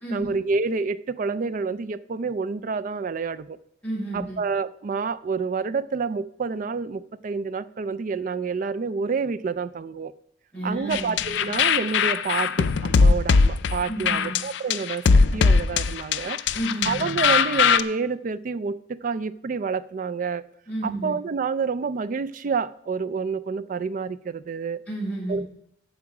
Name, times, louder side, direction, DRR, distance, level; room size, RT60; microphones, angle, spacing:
voice 1, 0.1-3.6 4.1-10.1 10.6-15.1 15.3-16.4 16.8-20.4 20.8-24.8 25.3-25.5, right 5 dB, 40° right, 0.3 m, -28 dB
voice 2, 3.8-4.4 10.5-11.1 13.9-14.3 16.5-17.0 20.7-21.1 24.9-25.4, right 1 dB, 5° left, 4.3 m, -31 dB
sound 1, 10.9-17.8, left 5 dB, 60° left, 0.4 m, -20 dB
14.5 x 4.9 x 4.9 m
head